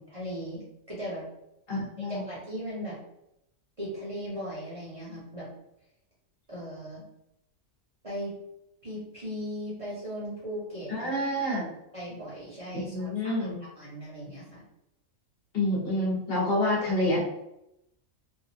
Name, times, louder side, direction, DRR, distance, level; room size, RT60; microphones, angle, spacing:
voice 1, 0.1-0.6 0.9-1.3 2.0-3.0 3.8-5.5 6.5-7.0 8.0-8.3 8.8-11.1 11.9-13.5 13.7-14.6, equal, 30° right, -8 dB, 0.8 m, -37 dB
voice 2, 1.7-2.2 10.9-11.7 12.9-13.6 15.5-17.2, left 1 dB, 50° left, -4 dB, 1.2 m, -27 dB
2.8 x 2.4 x 2.7 m, 0.83 s
omnidirectional pair, 1.4 m